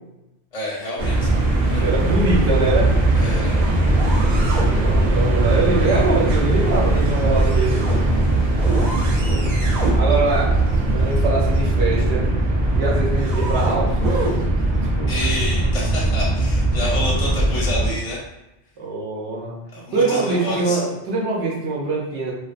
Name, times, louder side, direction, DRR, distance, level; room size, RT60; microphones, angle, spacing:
voice 1, 0.5-1.3 1.7-2.1 3.1-3.5 15.1-18.2 19.7-20.8, left 1 dB, 40° left, -5 dB, 0.6 m, -28 dB
sound 1, 1.0-17.9, right 2 dB, 55° right, 0.5 m, -19 dB
voice 2, 1.5-2.9 4.7-7.8 9.3-10.5 10.9-12.3 12.7-14.0 15.0-15.1 18.8-19.6 19.9-22.3, right 3 dB, 75° right, -3 dB, 1.0 m, -23 dB
2.3 x 2.3 x 2.4 m, 0.95 s
omnidirectional pair, 1.2 m